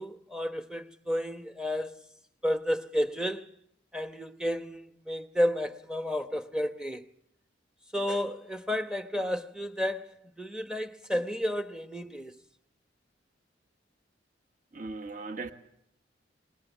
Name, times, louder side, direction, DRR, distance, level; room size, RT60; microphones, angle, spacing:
voice 1, 0.0-2.0 2.4-3.5 3.9-7.1 7.9-12.4, equal, 5° right, 0.9 m, -32 dB
voice 2, 14.7-15.5, right 3 dB, 45° right, 1.4 m, -38 dB
27.5 x 21.0 x 7.2 m
head